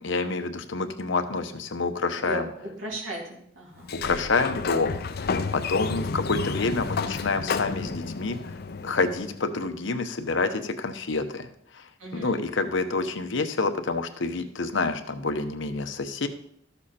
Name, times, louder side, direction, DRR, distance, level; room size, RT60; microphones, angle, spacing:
voice 1, 0.0-2.5 4.0-11.5 11.7-11.9 12.1-16.3, left 3 dB, 70° left, 8 dB, 0.9 m, -28 dB
voice 2, 2.2-4.0 12.0-12.4, right 1 dB, 85° right, -2 dB, 3.0 m, -36 dB
Sliding door, 3.8-9.5, left 4 dB, 55° left, 0.6 m, -31 dB
13.0 x 7.1 x 4.3 m, 0.70 s
head